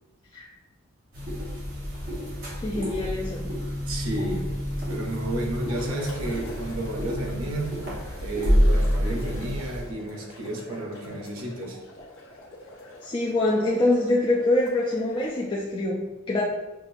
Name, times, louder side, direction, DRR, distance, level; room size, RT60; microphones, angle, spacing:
sound 1, 1.1-9.8, equal, 45° right, 1.4 m, -28 dB
voice 1, 2.6-3.5 13.0-16.4, left 2 dB, 25° left, -5 dB, 0.4 m, -25 dB
voice 2, 3.9-4.5 4.9-7.8 8.2-11.8, right 1 dB, 85° right, 1 dB, 0.8 m, -32 dB
Bubbles Long, 5.6-15.5, left 1 dB, 65° left, 1.0 m, -45 dB
5.8 x 2.5 x 2.6 m, 1.0 s
head